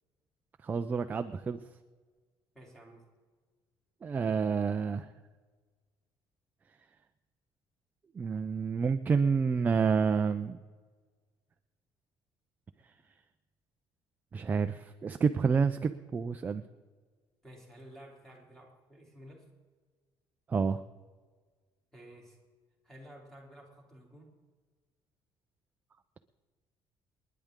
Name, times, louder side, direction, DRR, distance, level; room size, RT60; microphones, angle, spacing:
voice 1, 0.6-1.6 4.0-5.1 8.1-10.6 14.3-16.6 20.5-20.8, right 5 dB, 20° right, 8 dB, 0.4 m, -29 dB
voice 2, 2.5-3.1 17.4-19.5 21.9-22.4 22.8-24.4, equal, 5° left, -2 dB, 3.0 m, -52 dB
28.5 x 10.5 x 3.7 m, 1.5 s
cardioid pair, 180°, 9 cm